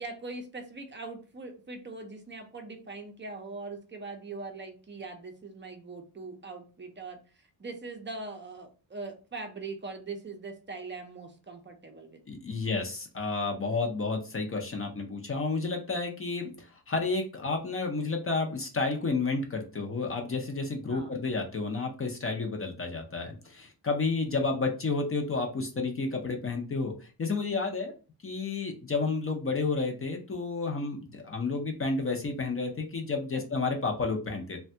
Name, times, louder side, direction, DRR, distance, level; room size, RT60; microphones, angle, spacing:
voice 1, 0.0-7.2 7.6-12.2 20.9-21.2 33.3-33.4, right 3 dB, 25° right, 4 dB, 0.5 m, -41 dB
voice 2, 12.3-27.9 28.2-34.6, left 3 dB, 30° left, 2 dB, 0.5 m, -31 dB
3.2 x 2.2 x 2.7 m, 0.35 s
wide cardioid pair, 170°, 42 cm